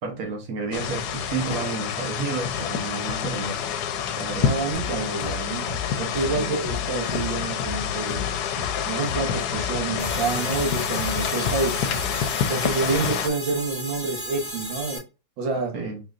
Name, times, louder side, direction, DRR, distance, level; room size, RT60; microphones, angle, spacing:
voice 1, 0.0-3.7 4.2-4.6 6.3-6.5 15.7-16.0, right 4 dB, 55° right, 1.6 m, -31 dB
sound 1, 0.7-13.3, left 8 dB, 70° left, 1.1 m, -28 dB
voice 2, 4.4-8.3 8.8-11.8 12.5-15.0 15.4-15.7, right 4 dB, 80° right, 1.8 m, -28 dB
sound 2, 4.7-12.3, left 5 dB, 40° left, 0.4 m, -35 dB
sound 3, 10.0-15.0, right 1 dB, 35° right, 2.4 m, -34 dB
4.2 x 3.8 x 2.4 m
omnidirectional pair, 2.0 m